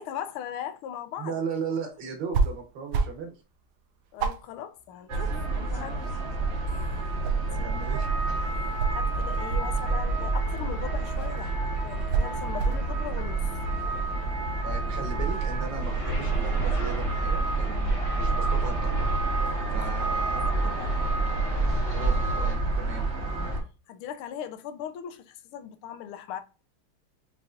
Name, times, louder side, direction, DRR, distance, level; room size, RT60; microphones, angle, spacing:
voice 1, 0.0-1.3 4.1-6.3 6.6-7.2 8.4-13.5 19.7-20.1 20.3-21.0 23.9-26.4, left 9 dB, 85° left, 1.5 m, -39 dB
voice 2, 1.2-3.3 7.2-8.1 14.6-19.1 19.7-20.5 21.9-23.1, right 5 dB, 65° right, 1.7 m, -37 dB
sound 1, 2.3-2.6 2.9-3.3 3.6-3.7 4.2-5.5 5.9-6.7 7.0-8.0 8.8-10.4 11.2-11.4 12.1-12.9, right 4 dB, 80° right, 1.5 m, -28 dB
sound 2, 5.1-23.6, right 3 dB, 45° right, 0.9 m, -28 dB
sound 3, 15.8-22.6, left 1 dB, 40° left, 0.4 m, -40 dB
5.6 x 2.9 x 2.4 m
omnidirectional pair, 2.3 m